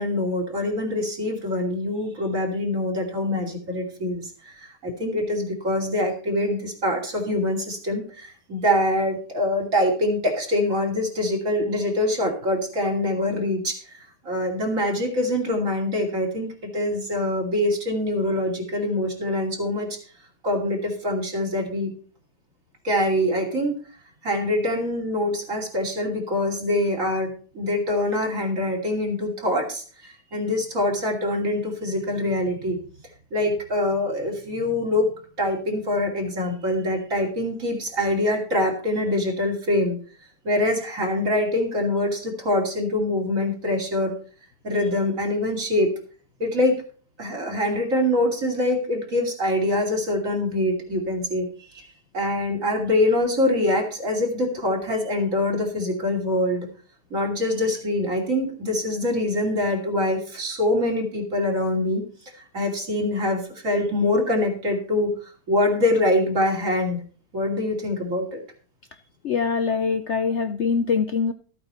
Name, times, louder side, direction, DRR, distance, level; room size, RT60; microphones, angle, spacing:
voice 1, 0.0-14.0 14.2-19.9 20.4-21.9 22.8-23.8 24.2-32.8 33.3-35.1 35.4-40.0 40.4-44.1 44.6-45.9 46.4-46.8 47.2-51.9 52.1-56.7 57.1-62.0 62.5-65.1 65.5-67.0 67.3-68.4, left 1 dB, 50° right, 1 dB, 3.1 m, -24 dB
voice 2, 69.2-71.3, left 5 dB, 60° left, 9 dB, 0.8 m, -23 dB
14.0 x 8.8 x 4.3 m, 0.41 s
omnidirectional pair, 1.8 m